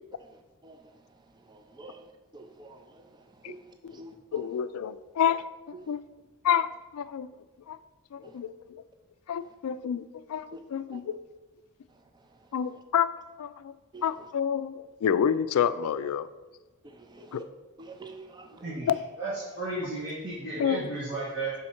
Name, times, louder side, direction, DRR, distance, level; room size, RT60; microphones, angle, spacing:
voice 1, 0.2-4.6 5.3-5.4 5.7-6.0 8.2-8.4 9.4-9.6 10.5-10.6 10.9-11.0 11.9-12.8 13.9-14.3 16.8-17.4 17.8-18.8 19.3-19.5 19.8-19.9, right 2 dB, 20° right, 5 dB, 0.4 m, -49 dB
voice 2, 4.3-5.4 5.9-6.0 6.4-6.7 6.9-7.3 7.7-7.8 8.1-8.8 9.3-10.5 10.7-11.0 12.5-13.1 13.4-13.7 14.0-14.7 15.0-16.3 17.3-17.4 18.9-19.0 20.6-20.8, left 8 dB, 80° left, 15 dB, 0.3 m, -28 dB
voice 3, 18.6-18.9 19.2-21.5, right 2 dB, 50° right, -9 dB, 1.8 m, -33 dB
6.3 x 4.4 x 4.4 m, 1.2 s
head